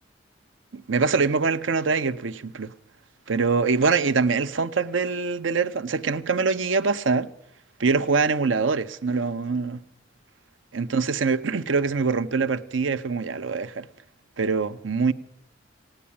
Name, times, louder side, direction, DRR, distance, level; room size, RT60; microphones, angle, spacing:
voice 1, 0.7-2.7 3.3-7.3 7.8-9.8 10.7-13.9 14.4-15.1, right 4 dB, 85° right, 0.7 m, -24 dB
16.5 x 9.9 x 8.7 m
head